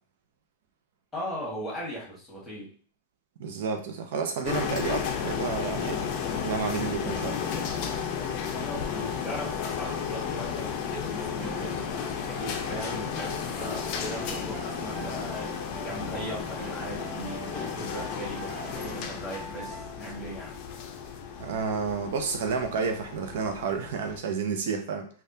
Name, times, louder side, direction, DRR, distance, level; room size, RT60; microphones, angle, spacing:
voice 1, 1.1-2.7 8.5-15.5 15.8-20.6, equal, 10° left, -4 dB, 1.4 m, -38 dB
voice 2, 3.4-6.0 6.4-7.4 21.4-25.1, right 5 dB, 65° right, 5 dB, 0.5 m, -30 dB
sound 1, 4.4-24.2, left 7 dB, 40° left, 0.5 m, -33 dB
sound 2, 11.4-20.3, right 3 dB, 20° right, 0.6 m, -44 dB
3.4 x 2.3 x 2.7 m, 0.42 s
supercardioid pair, 155°, 0 cm